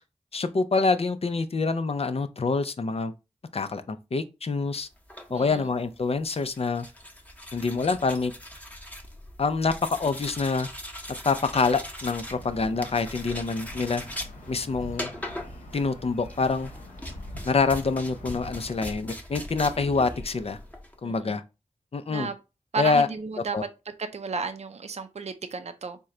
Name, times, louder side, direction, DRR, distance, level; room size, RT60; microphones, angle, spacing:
voice 1, 0.3-3.1 3.5-4.9 5.3-6.9 7.5-8.3 9.4-9.7 10.0-10.7 11.3-14.0 14.5-15.1 15.7-16.7 17.4-20.6 21.0-21.4 21.9-22.3 22.8-23.1 23.5-23.6, left 4 dB, 50° left, 0.5 m, -26 dB
sound 1, 5.0-21.0, left 1 dB, 10° left, 1.0 m, -40 dB
voice 2, 5.3-5.7 21.0-21.4 22.1-22.4 22.7-23.6 23.9-26.0, right 4 dB, 60° right, 0.5 m, -33 dB
sound 2, 12.3-18.8, left 1 dB, 90° left, 0.9 m, -44 dB
4.4 x 2.2 x 3.7 m
wide cardioid pair, 60°, 13 cm